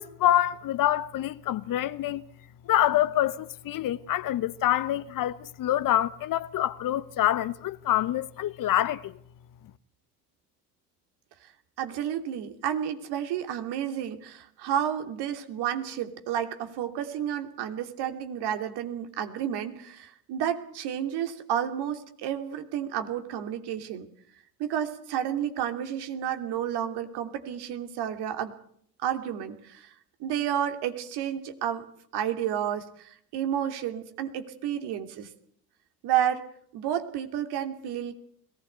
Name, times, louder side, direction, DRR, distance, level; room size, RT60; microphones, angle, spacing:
voice 1, 0.0-2.2 2.7-9.1, left 12 dB, 40° left, 1.2 m, -26 dB
voice 2, 11.8-24.1 24.6-28.5 29.0-29.9 30.2-31.8 32.1-35.3 36.0-36.5 36.7-38.1, right 10 dB, 55° right, 3.0 m, -31 dB
22.0 x 18.5 x 8.1 m
figure-of-eight pair, 65°, 48 cm